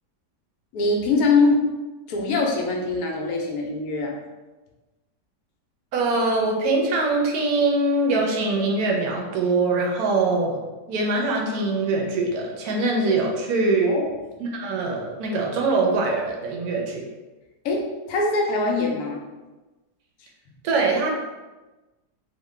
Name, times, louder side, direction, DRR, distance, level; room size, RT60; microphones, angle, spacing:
voice 1, 0.7-1.6 2.1-4.2 13.8-14.1 17.6-19.2, left 3 dB, 70° left, 0 dB, 0.9 m, -23 dB
voice 2, 5.9-10.6 10.9-14.0 14.4-17.1 20.6-21.1, right 3 dB, 70° right, 0 dB, 1.0 m, -23 dB
3.1 x 2.2 x 3.2 m, 1.2 s
omnidirectional pair, 1.8 m